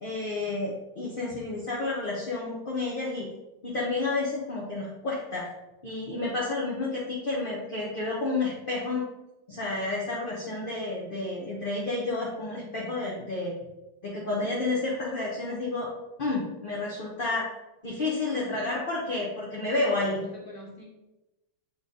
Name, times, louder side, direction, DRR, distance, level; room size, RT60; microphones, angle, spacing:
voice 1, 0.0-3.2 3.6-5.5 5.8-9.0 9.5-13.5 14.0-15.9 16.2-17.5 17.8-20.2, left 2 dB, 40° left, -5 dB, 0.9 m, -30 dB
voice 2, 18.3-18.6 19.0-19.2 20.0-20.9, right 1 dB, 10° left, -5 dB, 1.7 m, -42 dB
7.9 x 3.2 x 3.9 m, 1.0 s
omnidirectional pair, 2.0 m